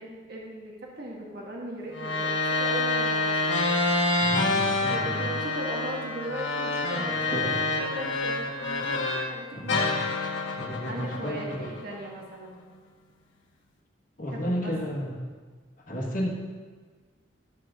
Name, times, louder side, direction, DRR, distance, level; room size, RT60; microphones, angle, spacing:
voice 1, 0.0-3.7 4.8-8.9 9.3-10.0 10.8-12.6 14.3-14.7, right 1 dB, 55° right, -2 dB, 1.7 m, -38 dB
sound 1, 1.9-9.3 9.7-12.1, left 2 dB, 85° left, 1.2 m, -27 dB
voice 2, 4.2-5.3 7.0-7.6 9.5-9.9 10.6-11.7 14.2-15.2 15.9-16.4, equal, 45° left, -1 dB, 1.4 m, -33 dB
12.0 x 7.4 x 3.7 m, 1.5 s
head